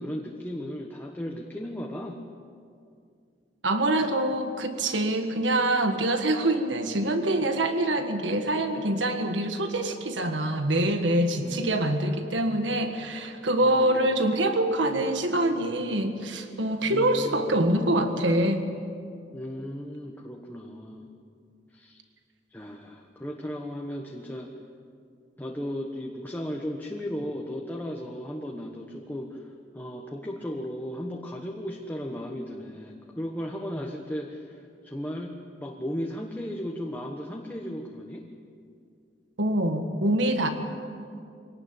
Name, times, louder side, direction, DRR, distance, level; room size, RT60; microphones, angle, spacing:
voice 1, 0.0-2.2 11.4-12.0 13.6-14.3 16.9-17.6 19.3-21.1 21.7-22.0 22.5-24.6 25.4-38.3, equal, 10° left, 1 dB, 1.3 m, -36 dB
voice 2, 3.6-18.7 39.4-40.5, right 1 dB, 80° right, 6 dB, 1.7 m, -25 dB
23.5 x 18.5 x 9.0 m, 2.3 s
head